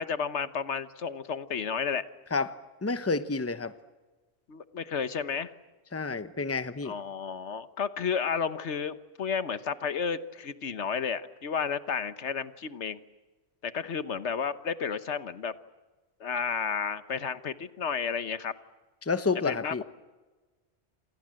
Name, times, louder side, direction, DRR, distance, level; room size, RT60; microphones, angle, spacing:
voice 1, 0.0-2.0 4.5-5.5 6.8-13.0 13.6-15.5 16.2-18.5 19.5-19.8, left 6 dB, 85° left, 12 dB, 1.4 m, -32 dB
voice 2, 2.3-3.7 5.9-6.9 19.0-19.8, left 4 dB, 15° left, 11 dB, 0.9 m, -30 dB
28.0 x 27.5 x 7.7 m, 1.3 s
omnidirectional pair, 1.1 m